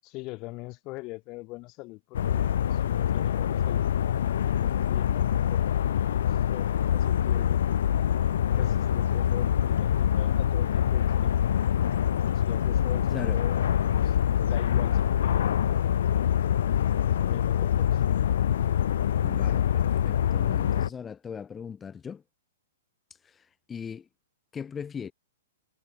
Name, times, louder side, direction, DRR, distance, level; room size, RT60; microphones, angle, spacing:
voice 1, 0.0-5.6 6.0-7.6 8.5-11.5 12.3-16.4 17.2-18.0, left 23 dB, 30° left, 7.5 m, -43 dB
sound 1, 2.1-20.9, left 10 dB, 70° left, 0.4 m, -25 dB
voice 2, 19.2-22.2 23.2-24.1 24.5-25.1, left 7 dB, 15° left, 2.7 m, -39 dB
hypercardioid pair, 145°, 0 cm